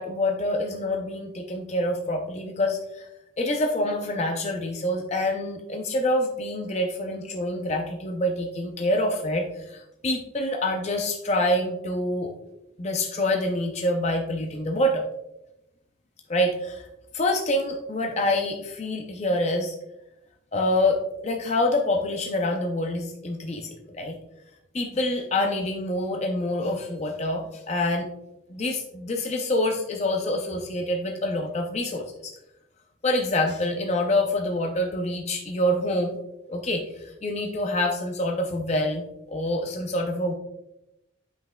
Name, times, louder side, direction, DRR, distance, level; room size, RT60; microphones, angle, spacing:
voice 1, 0.0-3.1 3.4-12.3 12.8-15.0 16.3-16.9 17.1-19.8 20.5-21.0 21.2-24.1 24.7-28.1 28.5-32.3 33.0-36.1 36.5-40.3, left 1 dB, 35° left, 3 dB, 0.5 m, -26 dB
7.8 x 5.7 x 2.2 m, 0.88 s
head